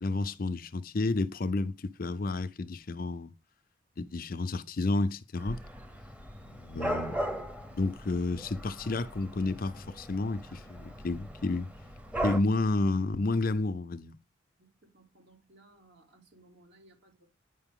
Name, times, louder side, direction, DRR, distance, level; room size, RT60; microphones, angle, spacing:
voice 1, 0.0-3.3 4.0-5.6 6.5-7.2 7.7-11.7 12.2-14.2, left 2 dB, 45° left, 0.5 m, -31 dB
Dog / Cat, 5.4-12.4, right 1 dB, 5° right, 1.0 m, -38 dB
voice 2, 14.6-17.3, right 2 dB, 60° right, 3.0 m, -60 dB
9.8 x 5.4 x 3.7 m
head